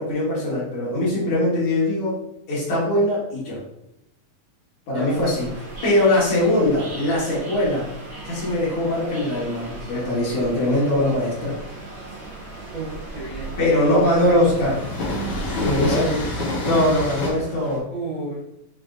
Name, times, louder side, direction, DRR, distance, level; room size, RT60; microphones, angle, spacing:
voice 1, 0.0-2.2 2.5-3.6 4.9-5.5 5.8-7.9 8.3-11.6 13.6-14.8 15.6-16.2 16.6-17.8, left 1 dB, 50° left, -7 dB, 1.7 m, -21 dB
sound 1, 5.1-17.8, right 3 dB, 75° right, 1.1 m, -38 dB
Train, 8.3-17.3, left 2 dB, 85° left, 1.1 m, -30 dB
voice 2, 12.7-14.6 15.8-16.2 17.9-18.4, right 1 dB, 55° right, -9 dB, 1.3 m, -32 dB
5.5 x 3.4 x 2.5 m, 0.84 s
omnidirectional pair, 4.4 m